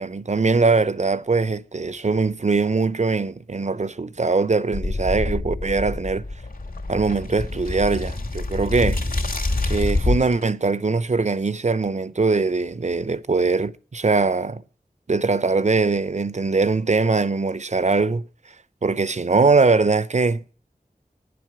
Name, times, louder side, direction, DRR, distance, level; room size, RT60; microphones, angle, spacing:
voice 1, 0.0-6.2 6.9-9.0 9.7-14.6 15.1-18.2 18.8-20.4, right 4 dB, 50° right, 0.7 m, -21 dB
sound 1, 4.7-10.4, left 2 dB, 70° left, 2.5 m, -26 dB
9.6 x 7.8 x 8.8 m
wide cardioid pair, 50°, 16 cm